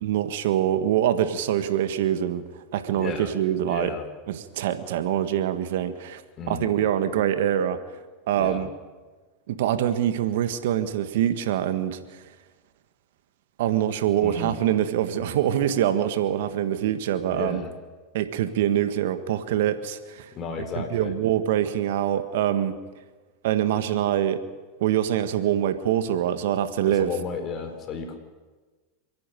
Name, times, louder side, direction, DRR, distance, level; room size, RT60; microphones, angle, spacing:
voice 1, 0.0-2.4 2.7-3.9 4.3-6.2 6.5-7.8 8.3-8.7 9.5-12.2 13.6-17.6 18.1-20.3 20.7-22.7 23.4-24.4 24.8-27.1, right 11 dB, 75° right, 10 dB, 1.6 m, -24 dB
voice 2, 2.9-3.3 3.7-4.0 6.4-6.7 8.3-8.7 14.2-14.6 17.3-17.7 20.3-21.1 26.9-28.2, left 5 dB, 40° left, 5 dB, 4.4 m, -33 dB
27.5 x 10.5 x 9.2 m, 1.3 s
hypercardioid pair, 105°, 0 cm